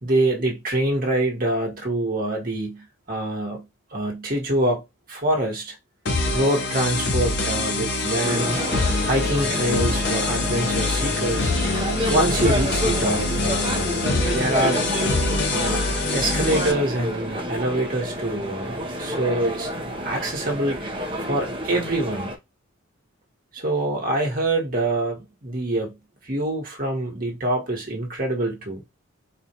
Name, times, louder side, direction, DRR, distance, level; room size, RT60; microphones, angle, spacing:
voice 1, 0.0-3.6 3.9-4.8 5.1-5.7 6.3-8.6 9.0-11.5 12.1-14.0 14.3-14.8 15.5-19.7 20.0-20.9 21.2-22.3 23.5-25.9 26.2-28.8, right 1 dB, 40° right, 1.3 m, -25 dB
sound 1, 6.1-16.7, left 3 dB, 55° left, 0.7 m, -24 dB
sound 2, 8.2-22.4, equal, 25° right, 0.7 m, -29 dB
4.3 x 2.4 x 2.8 m
head